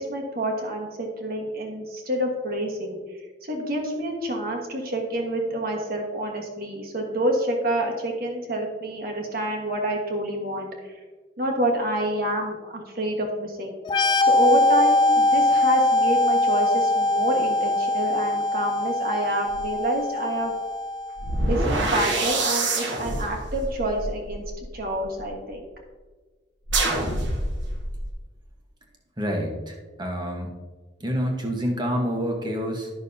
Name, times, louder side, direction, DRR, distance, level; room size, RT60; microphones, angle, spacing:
voice 1, 0.0-3.0 3.4-10.9 11.4-13.7 14.2-20.5 21.5-25.7, right 1 dB, 50° right, 1 dB, 1.5 m, -28 dB
sound 1, 13.8-21.4, left 2 dB, 25° left, 0.3 m, -22 dB
sound 2, 19.5-19.7 21.2-25.3 26.7-28.1, right 2 dB, 75° right, 1.3 m, -26 dB
voice 2, 29.2-30.5 31.0-32.9, equal, 25° right, 1 dB, 1.2 m, -27 dB
11.5 x 6.2 x 2.8 m, 1.3 s
head